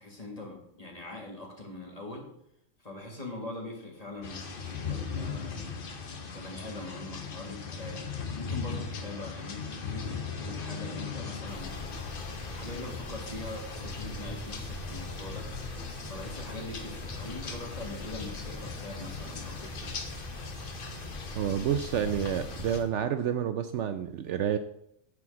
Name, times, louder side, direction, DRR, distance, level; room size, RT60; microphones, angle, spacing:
voice 1, 0.0-2.3 2.8-5.6 6.3-8.0 8.3-11.9 12.4-15.5 16.1-20.0, left 2 dB, 30° left, 0 dB, 2.0 m, -42 dB
sound 1, 4.2-22.8, left 5 dB, 45° left, 1.0 m, -39 dB
sound 2, 11.5-22.8, left 2 dB, 30° right, 2.6 m, -42 dB
voice 2, 21.3-24.6, right 9 dB, 70° right, 10 dB, 0.8 m, -29 dB
9.7 x 4.6 x 7.1 m, 0.76 s
omnidirectional pair, 1.4 m